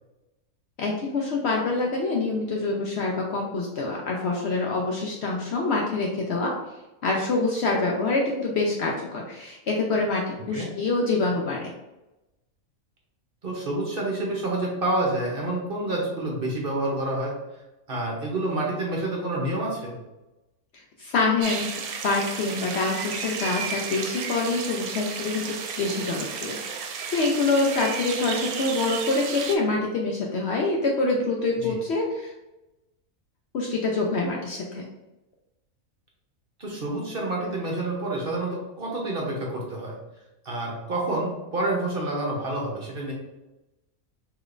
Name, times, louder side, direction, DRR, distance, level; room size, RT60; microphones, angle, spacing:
voice 1, 0.8-6.5 7.0-11.7 20.7-21.7 22.0-26.6 27.1-32.3 33.5-34.8, left 3 dB, 65° left, -1 dB, 0.7 m, -26 dB
voice 2, 13.4-17.3 17.9-20.0 31.6-31.8 36.6-40.0 40.4-43.1, right 2 dB, 45° right, -2 dB, 0.9 m, -28 dB
sound 1, 21.4-29.6, right 6 dB, 85° right, 1.0 m, -33 dB
4.9 x 3.0 x 2.5 m, 0.99 s
omnidirectional pair, 1.5 m